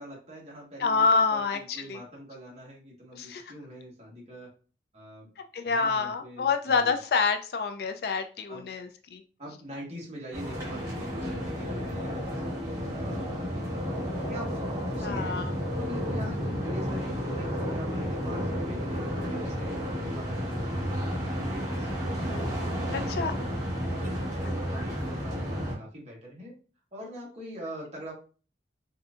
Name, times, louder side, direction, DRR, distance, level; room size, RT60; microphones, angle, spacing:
voice 1, 0.0-4.5 4.9-5.3 5.6-6.9 8.5-8.7 9.4-22.3 22.8-23.5 24.0-26.5 26.9-28.1, equal, 35° right, -3 dB, 1.3 m, -43 dB
voice 2, 0.8-2.0 3.1-3.5 5.4-9.2 15.0-15.5 22.9-23.3, left 4 dB, 55° left, 7 dB, 0.3 m, -27 dB
sound 1, 10.3-25.8, equal, 15° right, 1.2 m, -32 dB
4.1 x 2.6 x 2.4 m, 0.38 s
head